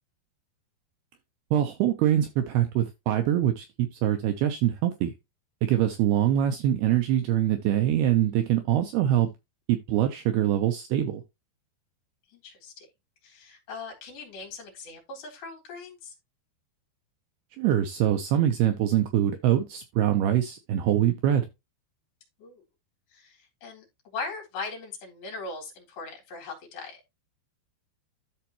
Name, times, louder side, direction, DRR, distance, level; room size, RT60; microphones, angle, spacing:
voice 1, 1.5-5.1 5.6-9.3 9.7-11.2 17.6-21.5, right 11 dB, 75° right, 2.6 m, -24 dB
voice 2, 12.3-12.9 13.2-16.1 22.4-22.6 23.1-23.9 24.1-27.0, left 4 dB, 55° left, 5.0 m, -39 dB
13.0 x 4.4 x 3.0 m
omnidirectional pair, 5.1 m